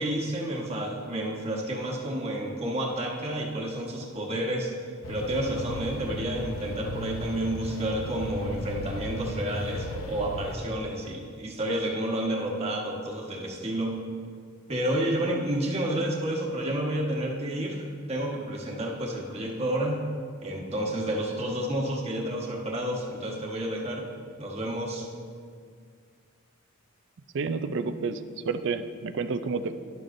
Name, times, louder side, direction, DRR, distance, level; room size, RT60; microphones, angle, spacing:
voice 1, 0.0-4.7 5.1-13.9 14.7-20.0 20.4-24.1 24.4-25.1, right 1 dB, 30° right, -1 dB, 1.3 m, -30 dB
sound 1, 5.0-10.6, left 1 dB, 80° left, 0.8 m, -36 dB
voice 2, 27.3-28.2 28.5-29.7, right 4 dB, 60° right, 10 dB, 0.4 m, -29 dB
11.5 x 11.0 x 2.6 m, 2.1 s
head